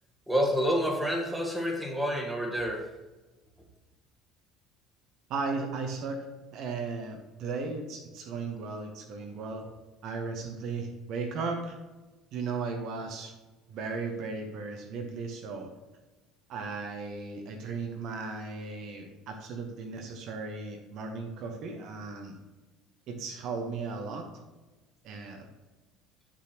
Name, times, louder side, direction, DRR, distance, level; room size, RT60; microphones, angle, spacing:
voice 1, 0.3-2.9, equal, 5° right, 1 dB, 1.6 m, -28 dB
voice 2, 5.3-6.3 6.5-9.7 10.0-11.8 12.3-13.3 13.7-15.7 16.5-22.4 23.1-24.3 25.0-25.5, right 4 dB, 55° right, 4 dB, 1.1 m, -36 dB
9.7 x 6.2 x 3.0 m, 1.2 s
figure-of-eight pair, 60°, 0 cm